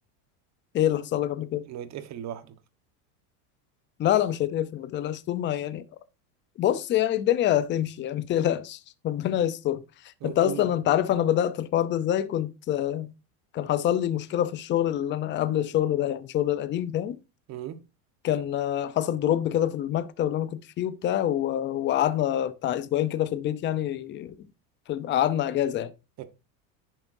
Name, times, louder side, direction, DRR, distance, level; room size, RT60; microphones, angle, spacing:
voice 1, 0.7-1.6 4.0-5.8 6.6-9.8 10.2-13.1 13.5-17.2 18.2-24.3 24.9-25.9, left 11 dB, 25° left, 0.7 m, -26 dB
voice 2, 1.7-2.5 10.2-10.7 17.5-17.8 26.2-26.3, right 10 dB, 40° right, 1.3 m, -37 dB
10.5 x 9.0 x 2.7 m
cardioid pair, 155°, 43 cm